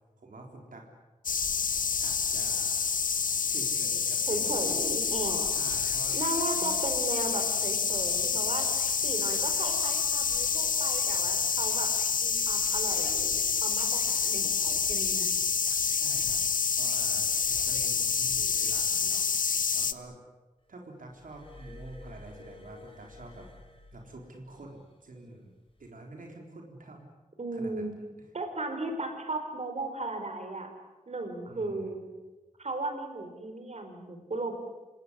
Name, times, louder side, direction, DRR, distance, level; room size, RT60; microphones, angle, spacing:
voice 1, 0.2-0.8 2.0-2.9 3.5-4.8 5.5-6.2 6.6-6.7 16.0-16.4 16.8-19.3 19.7-20.2 20.7-23.5 23.9-25.5 25.8-27.1 27.5-27.8 31.5-31.9, right 2 dB, 85° right, 1 dB, 4.0 m, -47 dB
sound 1, 1.2-19.9, left 6 dB, 90° left, 1.0 m, -28 dB
voice 2, 4.3-5.5 6.1-8.7 9.0-11.9 12.2-15.3 27.4-28.0 28.3-30.7 31.1-32.0 32.6-34.5, right 2 dB, 55° right, 5 dB, 4.5 m, -36 dB
Glass, 21.1-24.7 25.7-25.9, left 2 dB, 40° left, 4.3 m, -50 dB
27.0 x 18.5 x 9.9 m, 1.2 s
wide cardioid pair, 100°, 14 cm